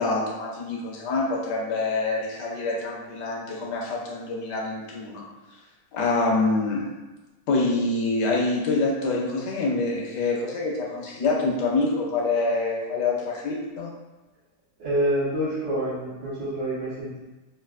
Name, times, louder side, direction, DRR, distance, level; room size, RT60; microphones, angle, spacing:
voice 1, 0.0-5.2 5.9-6.9 7.5-13.9, left 3 dB, 75° left, -2 dB, 1.3 m, -26 dB
voice 2, 14.8-17.2, right 1 dB, 80° right, -12 dB, 1.7 m, -27 dB
3.9 x 2.2 x 2.4 m, 1.2 s
omnidirectional pair, 2.0 m